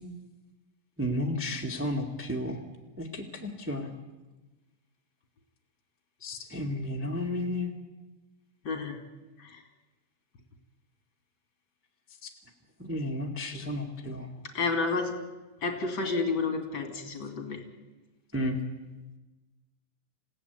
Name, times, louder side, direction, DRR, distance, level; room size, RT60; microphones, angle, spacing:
voice 1, 1.0-2.6 3.0-3.9 6.2-7.7 12.8-14.3 18.3-18.6, left 1 dB, 5° right, 0 dB, 1.1 m, -32 dB
voice 2, 8.6-9.0 9.4-9.6 14.5-15.1 15.6-17.6, left 4 dB, 40° left, 4 dB, 3.1 m, -30 dB
27.5 x 16.5 x 9.5 m, 1.2 s
omnidirectional pair, 3.9 m